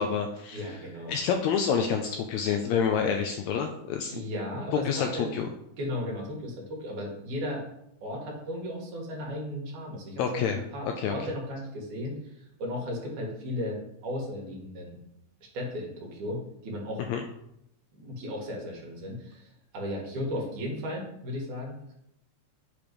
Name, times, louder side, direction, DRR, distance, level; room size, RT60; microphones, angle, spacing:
voice 1, 0.0-0.7 1.1-4.2 4.7-5.5 10.2-10.6 11.0-11.1 17.1-17.2, left 7 dB, 80° left, 5 dB, 1.6 m, -28 dB
voice 2, 0.5-1.2 4.1-5.3 5.8-7.6 8.0-15.0 15.5-17.0 17.9-21.9, left 1 dB, 75° right, -1 dB, 2.9 m, -35 dB
8.5 x 3.1 x 5.2 m, 0.78 s
omnidirectional pair, 3.6 m